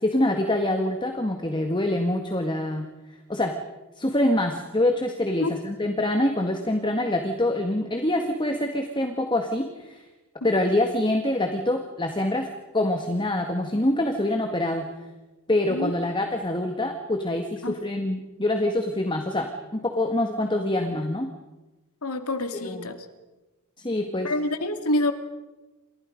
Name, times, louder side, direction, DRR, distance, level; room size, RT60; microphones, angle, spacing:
voice 1, 0.0-2.8 3.3-3.5 4.0-10.0 10.4-12.5 12.7-14.9 15.5-21.3 22.5-22.9 23.8-24.3, left 1 dB, 20° left, 5 dB, 1.8 m, -25 dB
voice 2, 22.0-23.0 24.2-25.1, left 1 dB, 90° left, 8 dB, 2.5 m, -26 dB
28.5 x 28.0 x 5.3 m, 1.1 s
head